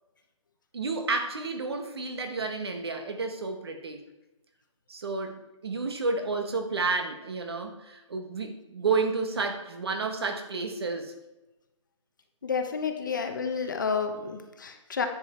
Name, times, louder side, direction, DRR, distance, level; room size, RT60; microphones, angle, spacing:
voice 1, 0.7-4.0 4.9-11.1, right 4 dB, 50° right, 5 dB, 1.5 m, -31 dB
voice 2, 12.4-15.1, left 5 dB, 40° left, 5 dB, 1.0 m, -30 dB
10.5 x 7.7 x 4.5 m, 1.0 s
hypercardioid pair, 175°, 17 cm